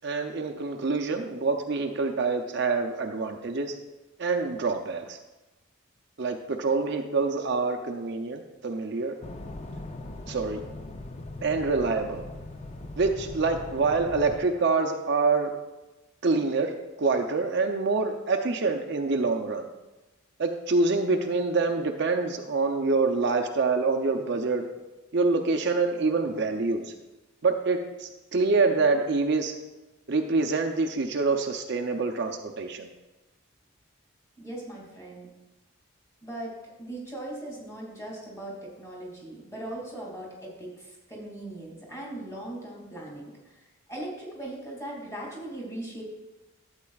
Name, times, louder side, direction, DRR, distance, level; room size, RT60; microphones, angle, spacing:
voice 1, 0.0-3.8 4.2-5.2 6.2-9.1 10.3-10.6 11.4-12.2 13.0-15.5 16.2-16.7 17.0-19.7 20.4-24.7 25.1-26.9 27.4-29.6 30.1-32.9, right 3 dB, 55° right, 4 dB, 0.5 m, -26 dB
sound 1, 9.2-14.4, left 2 dB, 30° left, 0.5 m, -40 dB
voice 2, 34.4-35.3 36.2-46.0, right 1 dB, 15° left, -3 dB, 2.4 m, -39 dB
11.5 x 8.2 x 2.4 m, 1.1 s
head